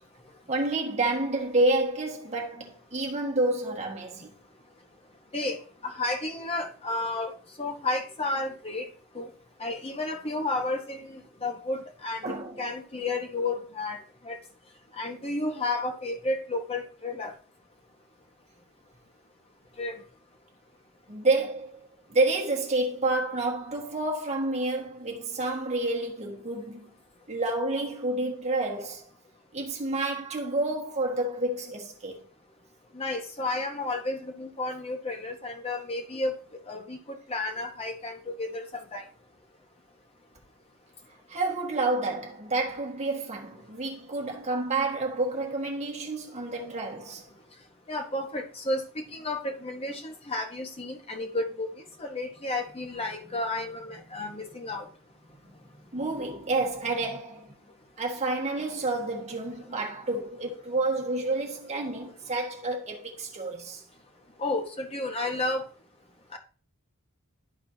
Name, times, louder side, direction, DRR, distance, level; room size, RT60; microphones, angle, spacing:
voice 1, 0.5-4.3 12.2-12.6 21.1-21.8 22.1-26.9 27.3-29.0 29.5-32.2 41.3-47.2 55.9-57.5 58.0-63.8, right 2 dB, 30° right, 1.3 m, -29 dB
voice 2, 5.3-8.9 9.1-9.3 9.6-14.0 14.2-14.4 15.0-17.3 19.8-20.0 32.9-36.3 36.7-39.0 47.9-51.7 52.0-54.8 64.4-65.6 66.3-66.4, left 2 dB, 25° left, 1.0 m, -32 dB
12.0 x 4.3 x 2.7 m
head